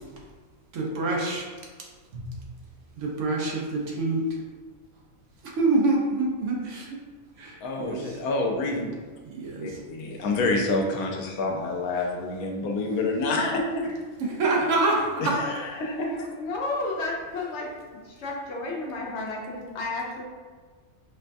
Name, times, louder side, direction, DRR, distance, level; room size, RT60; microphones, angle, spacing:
voice 1, 0.7-1.5 1.8-1.9 2.1-2.3 3.0-4.2 5.4-7.0 7.4-8.2 8.8-8.9 9.3-9.7 14.2-15.4, right 3 dB, 65° right, -2 dB, 1.0 m, -26 dB
voice 2, 7.6-8.9 9.6-13.9 15.2-16.3, left 2 dB, 90° left, 1 dB, 1.0 m, -28 dB
voice 3, 16.3-17.7 18.0-20.2, left 2 dB, 65° left, -1 dB, 0.8 m, -32 dB
4.4 x 2.2 x 2.5 m, 1.5 s
omnidirectional pair, 1.4 m